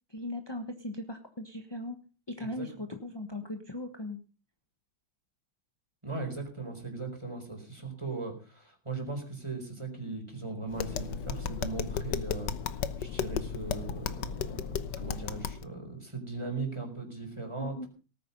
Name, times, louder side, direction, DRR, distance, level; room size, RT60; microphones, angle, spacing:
voice 1, 0.1-2.0 2.3-4.2 17.6-17.9, left 1 dB, 15° left, 5 dB, 0.9 m, -38 dB
voice 2, 6.0-14.6 15.0-17.9, right 3 dB, 15° right, 3 dB, 4.4 m, -38 dB
Tap, 10.7-15.6, left 8 dB, 60° left, 1.4 m, -34 dB
18.5 x 9.5 x 5.4 m, 0.36 s
omnidirectional pair, 2.3 m